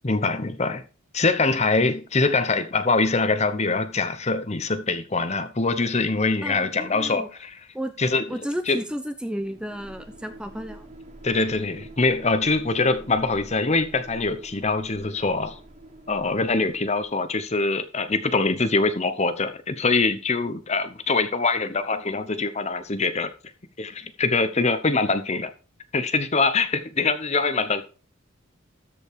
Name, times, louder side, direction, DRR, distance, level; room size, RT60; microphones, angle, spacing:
voice 1, 0.0-0.8 1.1-7.6 8.0-8.2 8.7-8.8 11.2-15.6 16.1-23.3 23.8-25.5 25.9-27.8, left 3 dB, 30° left, 0.9 m, -23 dB
voice 2, 6.4-7.3 7.7-7.9 8.3-10.9, equal, 5° right, 0.7 m, -32 dB
sound 1, 9.4-17.2, right 1 dB, 35° right, 1.5 m, -45 dB
13.5 x 5.3 x 4.7 m
head